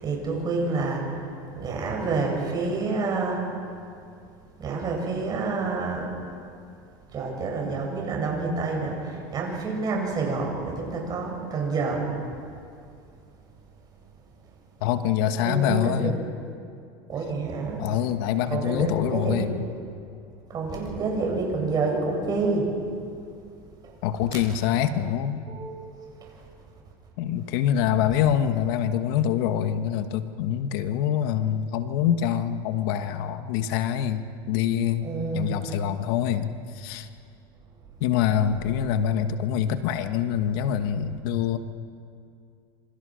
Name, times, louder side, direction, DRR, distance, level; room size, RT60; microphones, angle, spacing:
voice 1, 0.0-1.0 1.6-3.5 4.6-6.1 7.1-12.0 15.4-16.2 17.1-17.8 18.5-19.5 20.5-22.7 24.2-24.4 25.5-25.8 28.1-28.2 35.0-35.6, right 4 dB, 30° right, 0 dB, 7.9 m, -28 dB
voice 2, 14.8-16.2 17.8-19.6 24.0-25.4 27.2-35.1 35.3-37.1 38.0-41.6, left 9 dB, 70° left, 9 dB, 1.4 m, -25 dB
27.0 x 26.5 x 6.5 m, 2.4 s
supercardioid pair, 125°, 12 cm